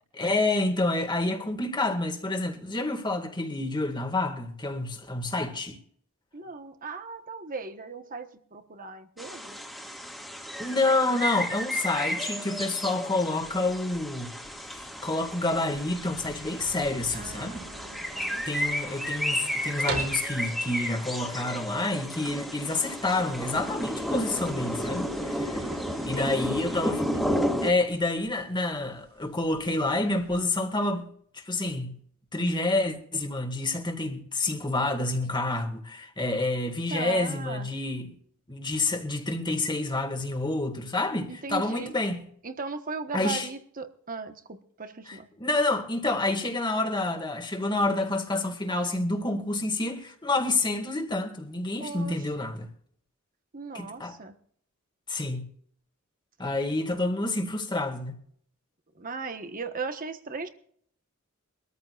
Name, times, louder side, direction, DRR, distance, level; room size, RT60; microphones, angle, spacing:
voice 1, 0.1-5.8 10.6-14.4 15.0-17.7 18.5-25.6 26.0-27.1 27.6-31.1 31.3-32.0 32.3-38.1 38.5-42.2 43.1-43.5 45.1-52.7 53.7-54.2 55.1-55.5 56.4-58.2, left 2 dB, 20° left, 2.0 m, -28 dB
voice 2, 6.3-9.6 17.1-18.4 26.0-27.0 36.9-37.7 41.3-41.9 42.4-45.3 51.8-52.4 53.5-54.3 58.9-60.5, right 4 dB, 40° right, 1.3 m, -38 dB
sound 1, 9.2-27.7, equal, ahead, 2.1 m, -32 dB
sound 2, 13.4-30.4, right 3 dB, 75° right, 3.8 m, -45 dB
23.5 x 14.0 x 2.5 m
head